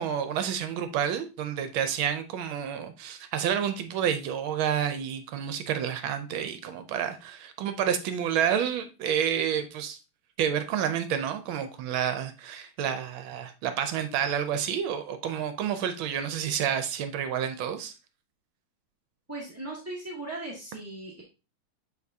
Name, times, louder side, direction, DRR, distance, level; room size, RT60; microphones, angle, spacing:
voice 1, 0.0-10.0 10.4-17.9, right 8 dB, 80° right, 1.4 m, -29 dB
voice 2, 19.3-21.2, right 2 dB, 10° right, 0.7 m, -38 dB
8.2 x 4.7 x 2.7 m
omnidirectional pair, 2.3 m